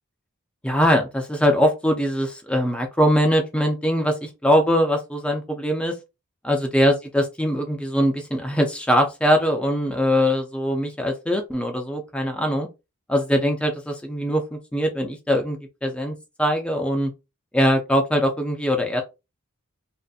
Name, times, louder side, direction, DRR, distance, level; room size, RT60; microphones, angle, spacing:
voice 1, 0.6-6.0 6.4-12.7 13.1-17.1 17.5-19.0, equal, 5° left, 0.3 m, -22 dB
2.6 x 2.5 x 2.3 m
head